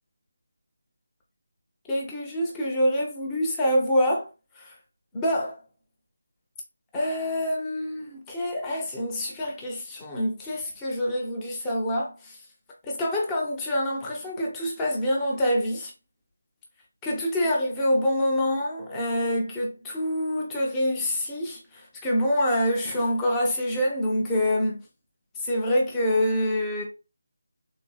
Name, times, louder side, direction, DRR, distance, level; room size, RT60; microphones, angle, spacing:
voice 1, 1.9-4.3 4.6-4.7 5.1-5.6 6.9-12.4 12.8-15.9 17.0-24.8 25.4-26.8, equal, 10° left, 0.8 m, -26 dB
3.6 x 2.9 x 2.4 m
figure-of-eight pair, 160°, 0 cm